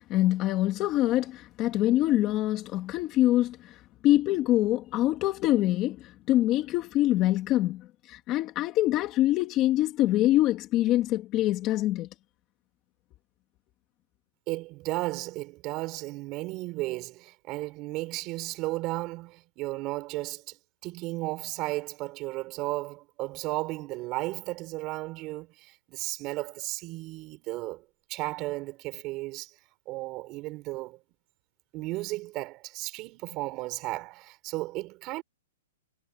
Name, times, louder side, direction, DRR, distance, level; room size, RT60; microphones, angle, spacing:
voice 1, 0.0-12.1, left 15 dB, 25° left, 1.9 m, -25 dB
voice 2, 14.5-29.5 29.9-31.0 31.7-35.2, right 20 dB, 25° right, 5.2 m, -34 dB
hypercardioid pair, 165°, 0 cm